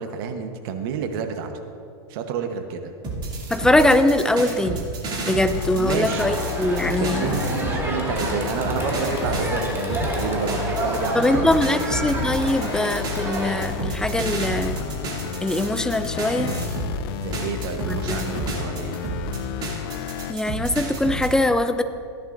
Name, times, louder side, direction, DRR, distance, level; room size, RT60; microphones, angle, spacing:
voice 1, 0.0-1.5 2.1-2.9 5.7-6.3 6.8-11.8 17.2-19.1, right 7 dB, 55° right, 6 dB, 1.1 m, -30 dB
sound 1, 3.0-7.8 8.2-17.0 17.3-21.3, right 2 dB, 30° right, 2.6 m, -31 dB
voice 2, 3.5-4.9 5.3-7.2 11.1-14.8 15.4-16.6 17.9-18.4 20.3-21.8, left 1 dB, 5° left, 10 dB, 0.4 m, -22 dB
sound 2, 5.5-20.4, left 9 dB, 60° left, 0.6 m, -32 dB
Crowd, 6.1-13.6, right 1 dB, 15° right, 1.9 m, -29 dB
16.0 x 10.5 x 2.6 m, 2.5 s
hypercardioid pair, 120°, 14 cm